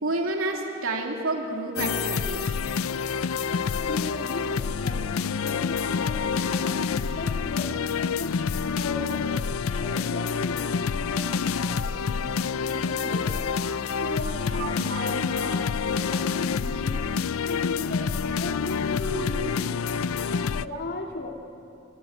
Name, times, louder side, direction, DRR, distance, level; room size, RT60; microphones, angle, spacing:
voice 1, 0.0-2.5 14.6-15.6 19.1-19.5, right 2 dB, 75° right, 1 dB, 3.0 m, -30 dB
sound 1, 1.8-20.7, left 6 dB, 85° left, 0.5 m, -27 dB
voice 2, 3.9-8.4 8.7-9.4 9.7-13.4 14.0-15.6 15.8-17.1 17.5-18.1 18.4-19.7 20.2-21.3, left 2 dB, 50° left, 2 dB, 2.6 m, -37 dB
26.0 x 22.0 x 9.1 m, 2.7 s
head